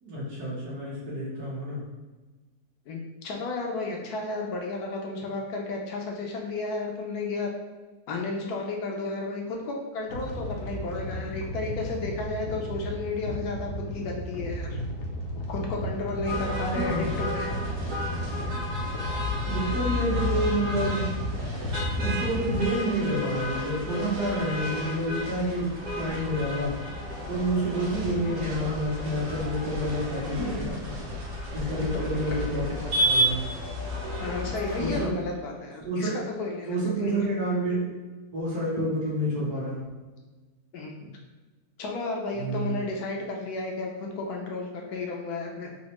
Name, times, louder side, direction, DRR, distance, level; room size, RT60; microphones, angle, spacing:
voice 1, 0.0-1.8 16.7-17.1 19.4-21.1 21.9-26.7 27.3-30.9 31.2-33.4 34.8-35.1 35.8-36.2 36.7-37.9 38.3-39.8 42.4-42.8, right 1 dB, 75° right, -6 dB, 1.6 m, -29 dB
voice 2, 2.9-7.5 8.1-14.7 15.5-17.5 26.2-26.3 31.8-32.4 34.2-37.3 38.7-38.8 40.7-41.1 41.8-43.9 44.2-45.7, left 3 dB, 75° left, 0 dB, 1.1 m, -33 dB
sound 1, 10.1-22.7, equal, 60° left, 0.8 m, -34 dB
sound 2, 16.2-35.1, left 1 dB, 60° right, 1.2 m, -32 dB
4.1 x 2.1 x 2.9 m, 1.3 s
omnidirectional pair, 1.7 m